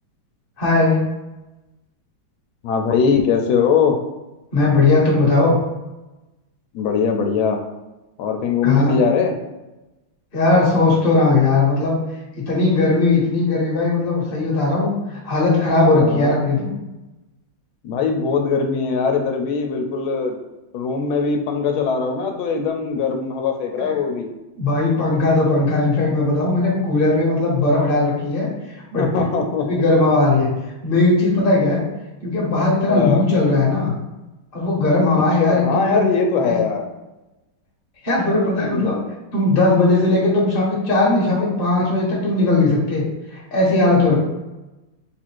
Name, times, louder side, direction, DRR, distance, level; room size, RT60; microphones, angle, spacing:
voice 1, 0.6-1.0 4.5-5.6 8.6-9.0 10.3-12.0 12.4-16.7 24.5-28.5 28.9-29.1 29.7-30.5 30.8-31.8 32.2-33.9 34.5-36.0 36.4-36.6 38.0-39.0 39.3-43.0 43.3-44.2, left 2 dB, 30° left, -4 dB, 1.2 m, -18 dB
voice 2, 2.6-4.0 6.7-7.6 8.2-9.3 15.9-16.4 17.8-20.4 20.7-24.3 29.0-29.7 32.9-33.2 35.4-36.8 38.6-39.0 44.0-44.2, left 5 dB, 90° left, 4 dB, 1.4 m, -21 dB
3.7 x 2.5 x 4.6 m, 1.0 s
omnidirectional pair, 2.2 m